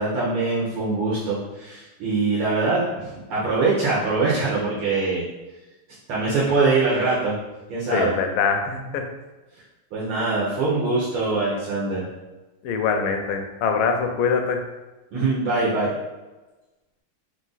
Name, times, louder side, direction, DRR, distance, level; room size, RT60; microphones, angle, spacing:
voice 1, 0.0-5.2 6.1-7.3 7.7-8.1 9.9-12.1 15.1-15.9, right 3 dB, 75° right, -7 dB, 1.7 m, -23 dB
voice 2, 7.9-9.1 12.6-14.6, left 5 dB, 80° left, 4 dB, 1.4 m, -23 dB
4.1 x 2.5 x 3.8 m, 1.1 s
omnidirectional pair, 2.4 m